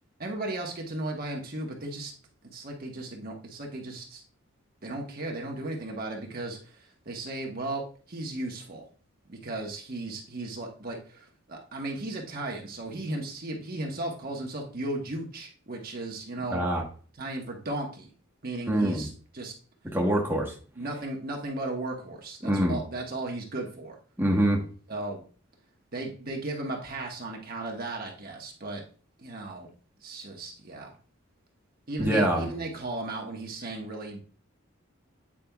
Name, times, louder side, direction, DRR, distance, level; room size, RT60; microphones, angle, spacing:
voice 1, 0.2-2.1 2.5-4.2 4.8-8.8 9.3-16.6 17.2-18.1 18.4-19.5 20.8-24.0 24.9-25.2 25.9-28.8 29.2-29.7 30.0-30.9 31.9-34.2, right 2 dB, 45° right, 0 dB, 1.1 m, -35 dB
voice 2, 16.5-16.8 18.7-19.0 19.9-20.5 22.4-22.8 24.2-24.6 32.0-32.5, right 1 dB, 10° right, -3 dB, 1.1 m, -24 dB
8.7 x 5.0 x 2.3 m, 0.41 s
head